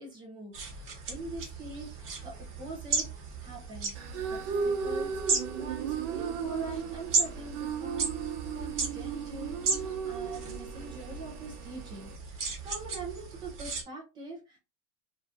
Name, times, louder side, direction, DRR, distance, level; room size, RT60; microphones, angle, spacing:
voice 1, 0.0-3.9 4.3-5.1 5.5-8.1 8.5-14.6, right 3 dB, 10° right, 0 dB, 0.3 m, -43 dB
sound 1, 0.5-13.8, right 4 dB, 30° right, 1.0 m, -36 dB
sound 2, 3.9-12.2, right 6 dB, 60° right, 0.8 m, -36 dB
2.7 x 2.4 x 3.3 m, 0.30 s
supercardioid pair, 150°, 45 cm